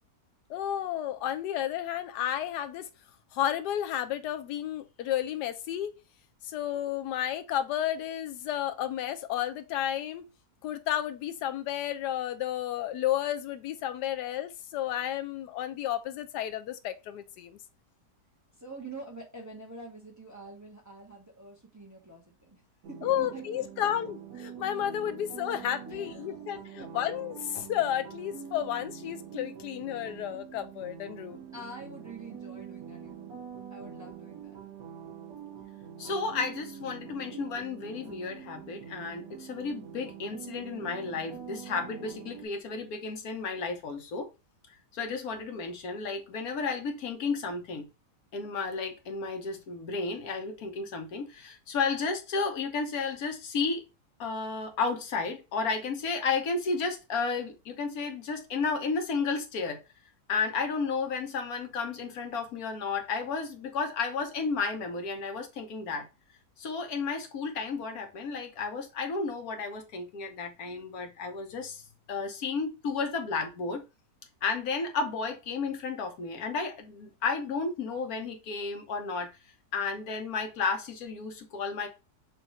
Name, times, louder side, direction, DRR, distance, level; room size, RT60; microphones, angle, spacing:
voice 1, 0.5-2.9 3.3-5.9 6.4-10.3 10.6-17.6 23.0-31.4, left 11 dB, 90° left, 1.2 m, -32 dB
voice 2, 18.6-22.6 22.9-23.9 25.9-26.3 26.8-27.0 31.5-33.3 33.7-34.6, right 2 dB, 15° right, 1.0 m, -46 dB
sound 1, 22.8-42.5, right 8 dB, 65° right, 1.4 m, -45 dB
voice 3, 36.0-44.3 44.9-47.9 48.3-53.8 54.2-59.8 60.3-66.1 66.6-71.8 72.1-73.8 74.4-79.3 79.7-81.9, left 4 dB, 65° left, 1.3 m, -32 dB
6.3 x 2.6 x 3.1 m
omnidirectional pair, 1.7 m